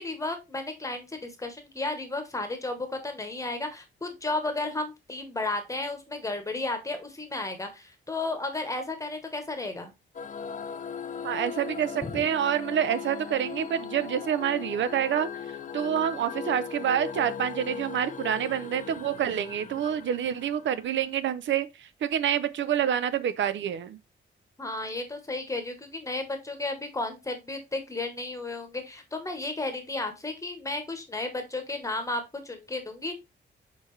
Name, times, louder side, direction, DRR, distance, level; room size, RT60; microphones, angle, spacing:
voice 1, 0.0-9.9 12.0-12.2 24.6-33.1, left 2 dB, 15° left, 1.0 m, -33 dB
sound 1, 10.1-21.1, left 7 dB, 40° left, 0.6 m, -38 dB
voice 2, 11.2-15.3 15.7-24.0, right 9 dB, 70° right, 0.5 m, -27 dB
6.7 x 4.5 x 3.1 m
wide cardioid pair, 170°, 20 cm